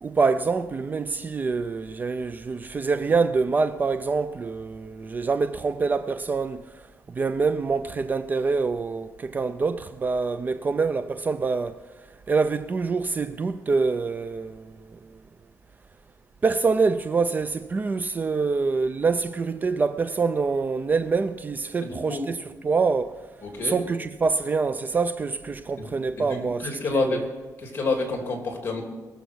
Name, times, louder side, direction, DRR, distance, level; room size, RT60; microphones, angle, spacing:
voice 1, 0.0-6.6 7.1-11.8 12.3-15.0 16.4-23.1 23.6-27.2, right 4 dB, 30° right, 0.4 m, -25 dB
voice 2, 21.8-22.2 23.4-23.8 25.8-25.9 26.2-27.3 27.6-28.8, left 3 dB, 35° left, 3.1 m, -28 dB
21.0 x 7.0 x 6.3 m
cardioid pair, 135°, 6 cm